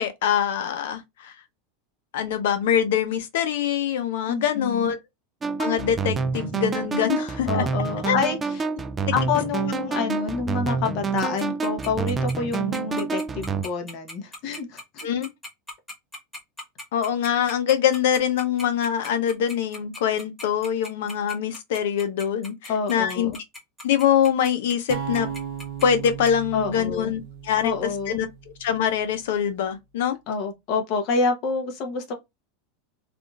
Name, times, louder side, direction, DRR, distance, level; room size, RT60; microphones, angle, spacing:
voice 1, 0.0-1.3 2.1-5.0 5.6-7.6 8.0-8.2 9.0-9.1 15.0-15.3 16.9-23.4 23.8-25.3 25.8-27.7 28.1-28.3 28.6-30.2, left 9 dB, 75° left, 0.7 m, -24 dB
voice 2, 4.2-4.9 7.5-8.7 9.1-15.1 22.7-23.3 26.5-27.1 27.6-28.2 30.3-32.1, left 5 dB, 45° left, 1.0 m, -27 dB
sound 1, 5.4-13.6, right 5 dB, 15° right, 0.3 m, -27 dB
Tick-tock, 11.2-26.3, left 2 dB, 5° left, 1.4 m, -38 dB
sound 2, 24.9-29.0, right 9 dB, 45° right, 0.7 m, -36 dB
3.5 x 2.5 x 2.4 m
supercardioid pair, 155°, 0 cm